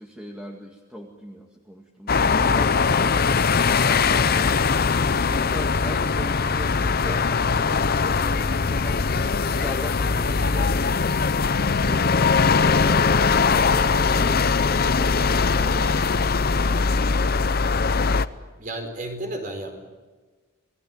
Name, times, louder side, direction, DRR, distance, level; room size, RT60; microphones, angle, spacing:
voice 1, 0.0-4.9 5.2-9.1 9.4-11.3 11.8-16.3 16.6-17.1, equal, 5° right, 0 dB, 2.1 m, -39 dB
sound 1, 2.1-18.3, left 5 dB, 50° left, 0.7 m, -21 dB
voice 2, 18.6-19.8, right 1 dB, 40° right, 5 dB, 4.7 m, -33 dB
27.5 x 20.0 x 9.2 m, 1.3 s
head